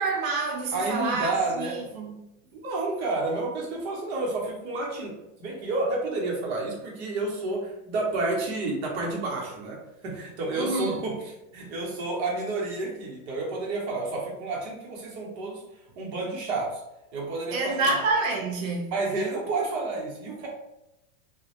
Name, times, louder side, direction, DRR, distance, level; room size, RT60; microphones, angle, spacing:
voice 1, 0.0-2.2 10.5-11.0 17.5-18.9, right 3 dB, 90° right, 0.6 m, -28 dB
voice 2, 0.7-2.1 2.5-5.1 5.4-15.6 16.0-16.8 17.1-17.9 18.9-20.5, right 3 dB, 55° right, 0.8 m, -30 dB
2.2 x 2.0 x 2.8 m
supercardioid pair, 165°, 39 cm